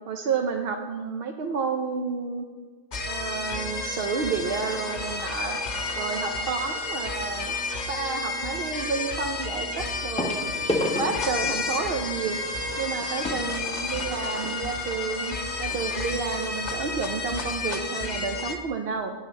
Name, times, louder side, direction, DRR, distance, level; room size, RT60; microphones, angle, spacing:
voice 1, 0.1-2.5 3.1-5.6 6.0-7.6 7.9-10.5 11.0-12.4 12.8-19.1, right 5 dB, 65° right, 5 dB, 0.7 m, -30 dB
sound 1, 2.9-18.6, left 3 dB, 45° left, 0.9 m, -31 dB
sound 2, 6.6-6.9 8.6-8.7 10.2-14.6 15.4-15.5 15.7-15.8 16.4-16.5, left 1 dB, 5° left, 0.5 m, -33 dB
8.5 x 4.0 x 7.1 m, 1.5 s
omnidirectional pair, 1.1 m